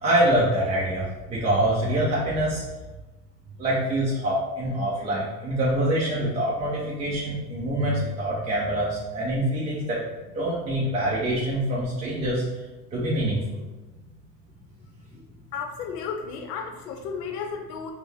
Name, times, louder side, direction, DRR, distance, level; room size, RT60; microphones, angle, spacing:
voice 1, 0.0-2.6 3.6-10.0 10.3-12.4 12.9-13.6, right 1 dB, 15° right, -6 dB, 0.4 m, -25 dB
voice 2, 15.5-17.9, left 6 dB, 70° left, 4 dB, 0.7 m, -33 dB
4.2 x 2.1 x 3.3 m, 1.1 s
hypercardioid pair, 115°, 49 cm